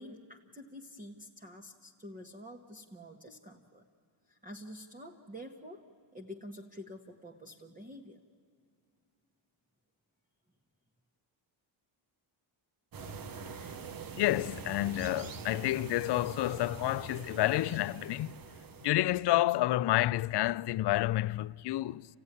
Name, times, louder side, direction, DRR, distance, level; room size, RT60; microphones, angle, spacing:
voice 1, 0.0-3.8 4.3-8.2, equal, 15° right, 1.2 m, -48 dB
sound 1, 12.9-18.9, right 6 dB, 45° right, 1.0 m, -44 dB
voice 2, 14.2-18.3 18.8-22.1, left 15 dB, 60° left, 0.5 m, -29 dB
29.0 x 16.0 x 9.8 m
cardioid pair, 120°, 47 cm